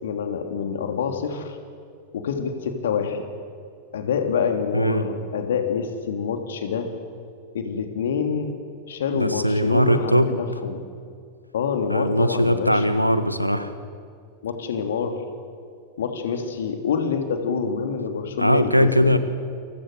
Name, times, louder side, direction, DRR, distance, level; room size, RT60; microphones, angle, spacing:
voice 1, 0.0-1.6 2.1-3.2 3.9-6.9 7.5-8.5 8.8-10.8 11.5-12.9 14.4-15.2 16.0-19.1, left 6 dB, 60° left, 5 dB, 3.2 m, -26 dB
voice 2, 4.7-5.0 9.1-10.4 11.9-13.7 18.4-19.2, equal, 90° right, 11 dB, 1.6 m, -20 dB
28.5 x 24.5 x 6.8 m, 2.3 s
figure-of-eight pair, 90°, 0 cm